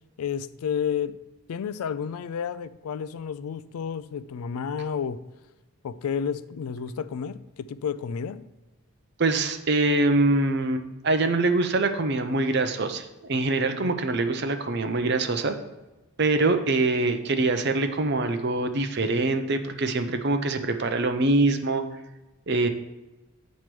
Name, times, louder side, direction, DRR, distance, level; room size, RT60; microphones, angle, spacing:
voice 1, 0.2-1.2 1.5-5.2 5.8-8.5, left 7 dB, 85° left, 15 dB, 0.3 m, -31 dB
voice 2, 9.2-15.5 16.2-21.8 22.5-22.7, right 2 dB, 50° right, 8 dB, 0.6 m, -24 dB
8.3 x 3.1 x 6.1 m, 1.0 s
head